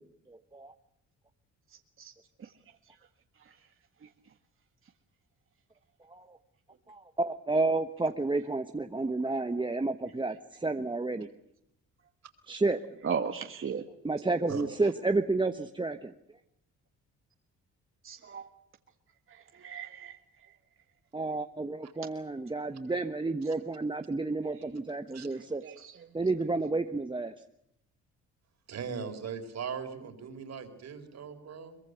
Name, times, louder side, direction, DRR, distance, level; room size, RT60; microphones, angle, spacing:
voice 1, 0.3-0.7 6.1-6.4 6.9-11.3 12.5-12.8 14.0-16.1 21.1-25.6 26.1-27.3, right 3 dB, 15° right, 7 dB, 1.1 m, -31 dB
voice 2, 13.0-13.8 18.0-18.5 19.6-20.1 25.6-25.9, right 6 dB, 45° right, 5 dB, 1.7 m, -35 dB
voice 3, 14.5-14.9 21.8-21.9 25.1-25.3 28.7-31.8, right 6 dB, 60° right, 6 dB, 4.3 m, -39 dB
23.0 x 22.0 x 8.1 m, 0.75 s
cardioid pair, 90°, 30 cm